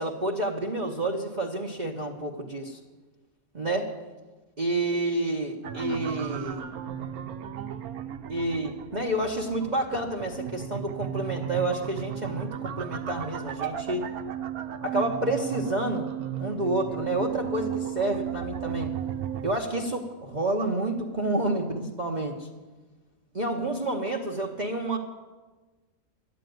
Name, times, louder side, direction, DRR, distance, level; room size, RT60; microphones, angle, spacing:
voice 1, 0.0-2.8 3.5-3.9 4.6-6.7 8.3-14.1 14.8-16.1 16.4-18.9 19.4-22.5 23.3-25.0, right 2 dB, 35° right, 0 dB, 0.9 m, -29 dB
sound 1, 5.6-19.5, right 9 dB, 70° right, 1.2 m, -35 dB
12.5 x 9.1 x 9.2 m, 1.3 s
omnidirectional pair, 1.6 m